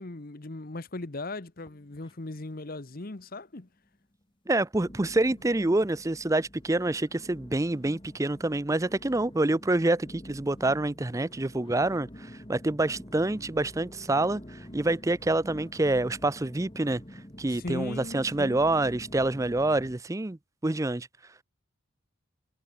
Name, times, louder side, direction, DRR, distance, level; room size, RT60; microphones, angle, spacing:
voice 1, 0.0-3.7 17.5-18.6, left 2 dB, 40° left, 1.0 m, -38 dB
sound 1, 1.6-2.5 2.8-3.4 3.9-4.0 4.8-19.9, equal, 20° left, 2.3 m, -48 dB
voice 2, 4.5-17.0 17.4-21.1, right 2 dB, 15° right, 0.5 m, -27 dB
head